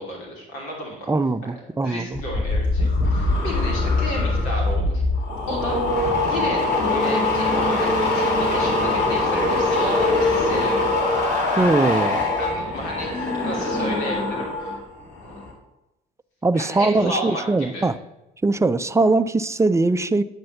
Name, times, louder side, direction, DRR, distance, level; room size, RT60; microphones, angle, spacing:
voice 1, 0.0-1.1 1.4-1.5 1.8-5.0 5.5-5.8 6.2-10.9 12.4-14.8 15.2-15.4 16.5-17.9, equal, 75° left, -1 dB, 3.2 m, -32 dB
voice 2, 1.1-2.2 11.6-12.2 16.4-18.0 18.4-20.2, right 3 dB, 15° right, 13 dB, 0.5 m, -21 dB
sound 1, 2.1-14.8 15.1-15.5, left 2 dB, 60° left, 3.4 m, -22 dB
9.6 x 4.5 x 6.7 m, 0.93 s
hypercardioid pair, 55°, 21 cm